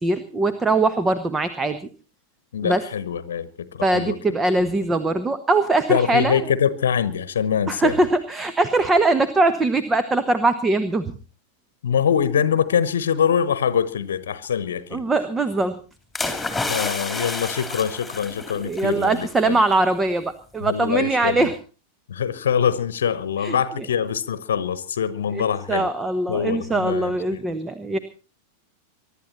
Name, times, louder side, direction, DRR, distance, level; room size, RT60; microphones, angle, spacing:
voice 1, 0.0-1.8 2.6-2.8 3.8-6.4 7.7-11.1 14.9-15.7 18.5-21.5 23.4-23.6 25.3-25.4 25.7-28.0, right 2 dB, 15° right, 1.1 m, -21 dB
voice 2, 2.5-4.2 5.9-7.9 11.8-15.0 16.7-19.6 20.6-21.5 22.1-25.9 26.3-27.4, left 8 dB, 65° left, 1.1 m, -24 dB
sound 1, 16.2-19.2 19.5-19.7, left 3 dB, 5° left, 3.3 m, -29 dB
23.5 x 12.0 x 4.3 m
figure-of-eight pair, 90°, 0 cm